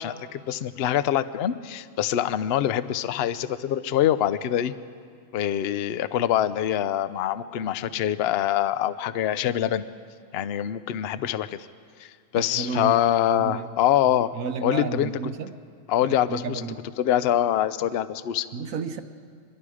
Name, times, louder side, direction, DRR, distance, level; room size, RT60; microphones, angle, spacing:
voice 1, 0.0-4.7 5.3-9.8 10.3-11.6 12.0-12.1 12.3-14.3 14.6-15.1 15.9-16.6 17.0-18.5, left 11 dB, 60° left, 14 dB, 0.8 m, -24 dB
voice 2, 12.3-12.9 13.3-13.7 14.1-15.6 16.0-16.8 18.5-19.0, right 5 dB, 85° right, 8 dB, 1.3 m, -32 dB
25.0 x 21.5 x 4.9 m, 2.2 s
omnidirectional pair, 1.4 m